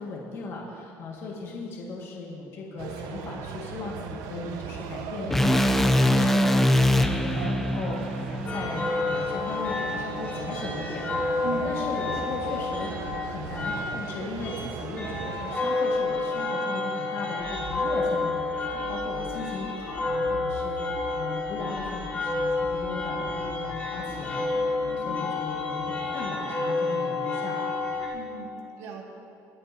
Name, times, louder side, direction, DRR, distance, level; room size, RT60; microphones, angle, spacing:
voice 1, 0.0-24.5 24.8-27.6, left 3 dB, 45° left, -2 dB, 1.7 m, -37 dB
sound 1, 2.8-15.6, right 7 dB, 90° right, 0.8 m, -38 dB
sound 2, 5.3-9.5, left 1 dB, 5° left, 0.4 m, -23 dB
sound 3, 8.4-28.1, left 3 dB, 25° left, 2.3 m, -30 dB
voice 2, 28.1-29.0, right 6 dB, 70° right, -1 dB, 1.9 m, -38 dB
21.0 x 10.5 x 2.7 m, 2.5 s
cardioid pair, 170°, 6 cm